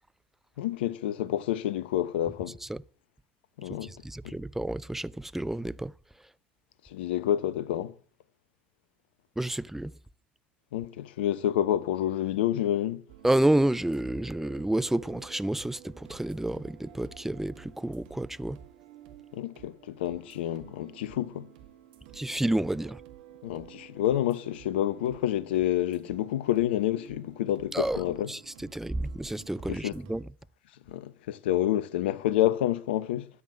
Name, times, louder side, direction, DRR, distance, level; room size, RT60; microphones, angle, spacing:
voice 1, 0.6-2.6 3.6-3.9 4.2-4.3 6.8-7.9 10.7-13.0 19.3-21.5 23.4-28.3 29.7-29.9 30.9-33.3, left 12 dB, 75° left, 0.9 m, -28 dB
voice 2, 3.8-5.9 9.4-9.9 13.2-18.6 22.1-23.0 27.7-28.0 28.3-30.2, right 1 dB, 5° right, 0.7 m, -29 dB
sound 1, 13.1-30.2, right 12 dB, 75° right, 1.9 m, -52 dB
13.5 x 9.5 x 8.5 m
hypercardioid pair, 70°, 6 cm